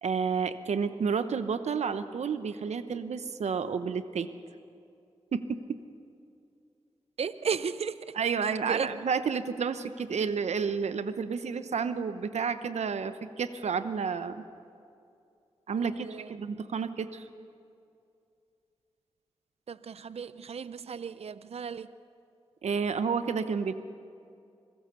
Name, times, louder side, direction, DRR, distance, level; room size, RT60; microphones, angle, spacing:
voice 1, 0.0-4.3 5.3-5.8 8.2-14.4 15.7-17.2 22.6-23.7, right 6 dB, 85° right, 11 dB, 0.9 m, -30 dB
voice 2, 7.2-8.2 8.4-8.9 15.7-16.3 19.7-21.9, right 6 dB, 65° right, 15 dB, 0.5 m, -35 dB
25.5 x 16.5 x 6.8 m, 2.5 s
cardioid pair, 40°, 11 cm